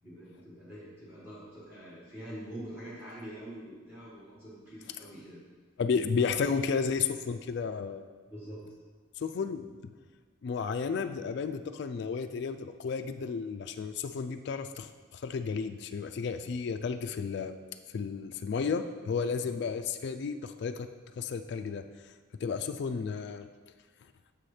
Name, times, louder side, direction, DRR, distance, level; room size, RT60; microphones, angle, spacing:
voice 1, 0.0-5.4 8.3-8.6 19.4-19.5, right 1 dB, 10° right, -7 dB, 1.4 m, -45 dB
voice 2, 5.8-8.1 9.2-9.9 10.4-17.5 17.9-20.9 21.2-21.8 22.4-23.5, left 5 dB, 55° left, 8 dB, 0.3 m, -32 dB
7.0 x 4.3 x 4.9 m, 1.4 s
head